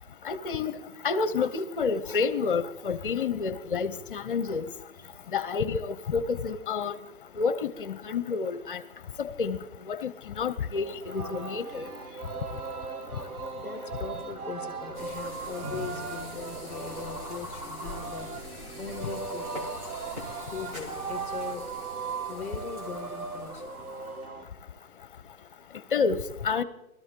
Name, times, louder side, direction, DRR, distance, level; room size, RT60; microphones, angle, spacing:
voice 1, 0.2-0.8 1.0-4.7 5.3-6.9 7.4-8.8 9.2-9.6 9.9-11.8 25.9-26.2 26.4-26.6, left 5 dB, 35° left, 0.8 m, -29 dB
voice 2, 5.0-5.4 13.6-19.7 20.5-21.7 22.3-23.7, left 6 dB, 5° left, 1.1 m, -40 dB
Singing, 10.7-24.5, right 5 dB, 85° right, 1.6 m, -38 dB
sound 1, 14.9-24.3, left 1 dB, 25° right, 2.3 m, -43 dB
20.0 x 13.5 x 3.8 m
hypercardioid pair, 165°, 43 cm